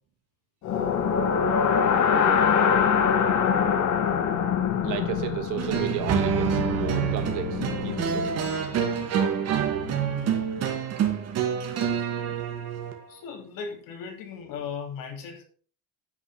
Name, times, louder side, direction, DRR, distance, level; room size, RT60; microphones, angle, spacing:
sound 1, 0.6-8.7, left 7 dB, 60° left, 1.7 m, -24 dB
voice 1, 4.8-8.3, right 11 dB, 70° right, 1.7 m, -33 dB
sound 2, 5.6-13.0, right 7 dB, 50° right, 2.1 m, -27 dB
voice 2, 9.8-10.6 12.2-12.4 13.1-15.4, left 6 dB, 80° left, 3.3 m, -38 dB
9.7 x 6.0 x 6.0 m
cardioid pair, 170°, 32 cm